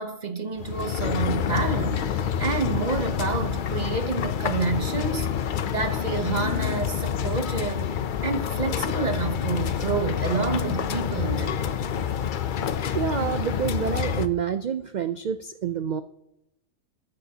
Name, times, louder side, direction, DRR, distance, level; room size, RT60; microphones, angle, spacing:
voice 1, 0.0-5.3 5.7-11.6, right 4 dB, 40° right, 0.8 m, -29 dB
sound 1, 0.6-14.3, left 8 dB, 55° left, 0.6 m, -28 dB
sound 2, 1.2-11.3, left 9 dB, 80° left, 1.1 m, -39 dB
voice 2, 12.9-16.0, right 8 dB, 75° right, 0.4 m, -28 dB
13.5 x 12.0 x 2.8 m
omnidirectional pair, 1.3 m